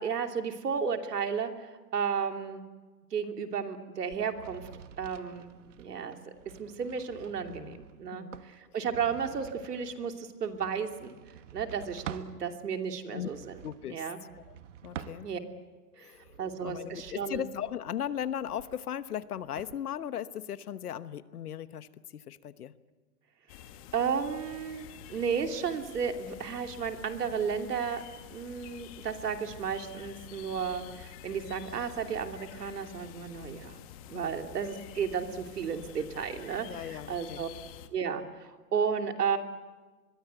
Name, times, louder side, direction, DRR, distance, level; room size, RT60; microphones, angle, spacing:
voice 1, 0.0-2.6 3.1-4.7 5.0-11.2 11.5-13.6 13.9-14.2 15.2-15.4 16.0-17.4 23.9-28.0 28.3-33.8 34.1-37.5 37.9-39.4, right 6 dB, 75° right, 5 dB, 2.9 m, -33 dB
sound 1, 4.0-12.4 13.2-15.6 16.1-19.8, right 9 dB, 50° right, 1.3 m, -48 dB
voice 2, 7.4-7.8 8.1-8.4 8.7-8.8 13.1-13.3 13.6-14.0 14.5-15.3 16.0-22.7 34.1-34.4 36.7-37.4, left 10 dB, 70° left, 14 dB, 1.2 m, -38 dB
sound 2, 23.5-37.9, left 11 dB, 20° left, 1.0 m, -49 dB
25.0 x 22.0 x 8.1 m, 1.3 s
hypercardioid pair, 160°, 48 cm